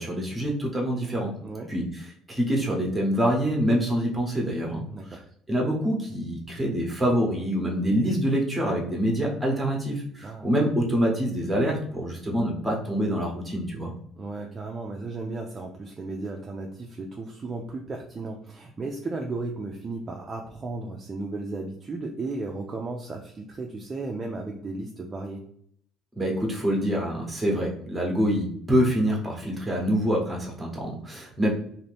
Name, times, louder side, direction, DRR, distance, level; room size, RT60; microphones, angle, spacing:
voice 1, 0.0-1.3 1.7-1.8 2.3-4.8 5.5-13.9 26.2-31.5, equal, 5° right, -2 dB, 0.9 m, -25 dB
voice 2, 4.9-5.2 10.2-10.5 14.2-25.5, right 3 dB, 20° right, 1 dB, 0.3 m, -35 dB
2.6 x 2.5 x 3.3 m, 0.65 s
cardioid pair, 150°, 0 cm